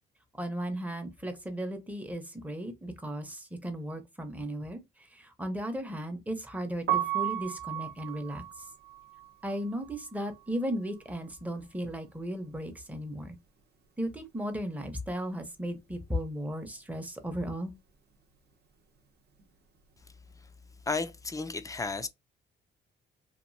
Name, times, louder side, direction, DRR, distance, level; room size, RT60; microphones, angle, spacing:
voice 1, 0.4-4.8 5.1-8.4 9.4-13.4 14.0-17.7, equal, 5° right, 0.8 m, -36 dB
Piano, 6.7-12.7 12.9-14.5 14.8-21.2, right 12 dB, 55° right, 0.8 m, -37 dB
voice 2, 20.9-22.1, left 3 dB, 15° left, 0.4 m, -33 dB
2.9 x 2.6 x 2.6 m
cardioid pair, 90°, 20 cm